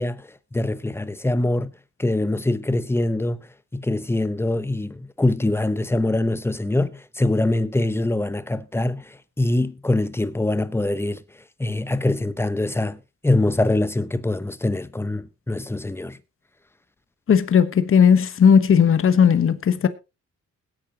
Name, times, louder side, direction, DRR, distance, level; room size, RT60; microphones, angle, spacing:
voice 1, 0.0-1.7 2.0-3.4 3.7-11.2 11.6-16.2, left 2 dB, 10° left, 0.8 m, -24 dB
voice 2, 17.3-19.9, left 7 dB, 45° left, 1.2 m, -16 dB
21.0 x 8.8 x 2.9 m
cardioid pair, 90°, 30 cm